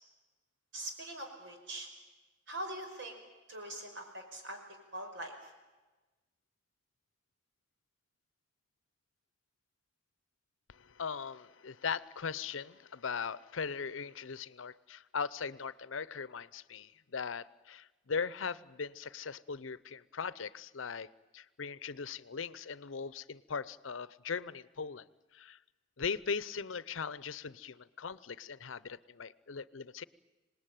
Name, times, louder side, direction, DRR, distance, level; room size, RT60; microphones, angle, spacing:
voice 1, 0.7-1.9 2.5-3.2 3.5-4.6 4.9-5.5, right 1 dB, 65° right, 4 dB, 5.4 m, -42 dB
voice 2, 10.7-21.1 21.3-25.0 25.3-25.6 26.0-30.0, left 5 dB, 85° left, 18 dB, 0.7 m, -39 dB
26.0 x 19.5 x 9.2 m, 1.2 s
head